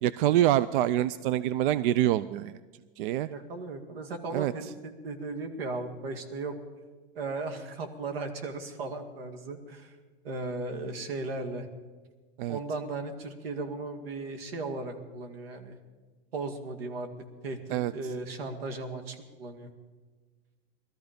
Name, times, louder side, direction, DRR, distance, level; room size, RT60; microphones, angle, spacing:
voice 1, 0.0-2.5 3.0-3.3 4.3-4.7 12.4-12.6 17.7-17.9, right 13 dB, 60° right, 17 dB, 0.5 m, -26 dB
voice 2, 3.3-6.5 7.2-10.0 10.2-11.7 12.5-15.8 16.3-17.1 17.4-17.6 17.9-19.7, right 3 dB, 85° right, 7 dB, 2.1 m, -36 dB
19.0 x 13.5 x 5.2 m, 1.4 s
supercardioid pair, 140°, 29 cm